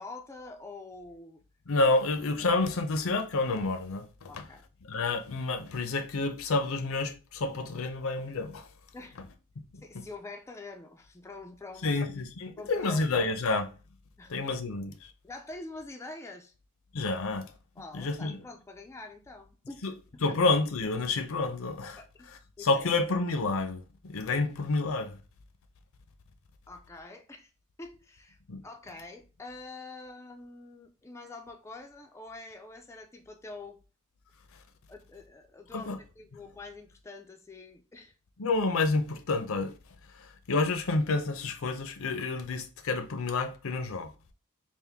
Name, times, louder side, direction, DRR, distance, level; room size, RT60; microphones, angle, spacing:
voice 1, 0.0-1.4 4.3-4.6 8.9-9.2 9.8-12.1 12.6-13.3 14.2-14.3 15.2-16.5 17.8-19.8 20.1-20.4 22.0-22.3 22.6-22.9 26.7-27.5 27.8-28.4 28.6-33.8 34.9-38.1, left 3 dB, 10° left, 0.3 m, -45 dB
voice 2, 1.7-4.4 4.9-8.7 11.8-13.7 14.3-15.1 16.9-17.5 17.9-18.4 19.8-19.9 20.2-25.2 28.5-28.6 35.7-36.0 38.4-39.7 40.2-44.1, left 3 dB, 65° left, 0.6 m, -29 dB
3.7 x 2.5 x 3.4 m
head